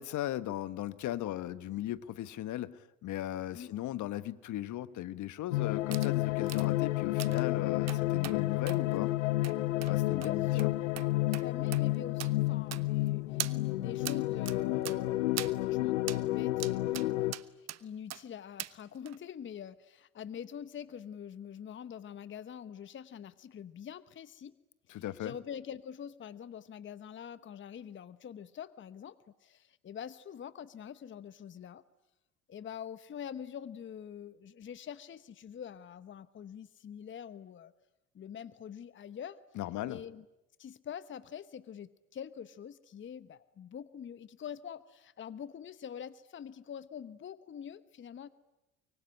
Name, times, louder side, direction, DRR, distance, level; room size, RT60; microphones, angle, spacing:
voice 1, 0.0-9.1 9.9-10.7 24.9-25.4 39.5-40.0, left 13 dB, 50° left, 15 dB, 1.2 m, -37 dB
sound 1, 5.5-17.3, left 18 dB, 80° left, 0.9 m, -30 dB
sound 2, 5.9-6.1 6.5-6.7 7.2-7.4 7.9-8.4 8.7-8.8 9.4-9.6 9.8-9.9 10.2-10.3 10.6-10.7 11.0-11.1 11.3-11.5 11.7-11.8 12.2-12.3 12.7-13.1 13.4-13.5 14.1-14.2 14.5-14.6 14.9-15.0 15.4-15.5 16.1-16.2 16.6-17.1 17.3-17.8 18.1-18.2 18.6-18.7 19.1-19.2, right 12 dB, 45° right, 1.1 m, -40 dB
voice 2, 10.1-10.6 11.3-24.5 24.9-31.8 32.5-37.7 38.1-39.4 39.9-40.2 40.6-48.3, left 8 dB, 30° left, 15 dB, 1.0 m, -45 dB
24.5 x 24.0 x 9.9 m, 0.95 s
hypercardioid pair, 70°, 37 cm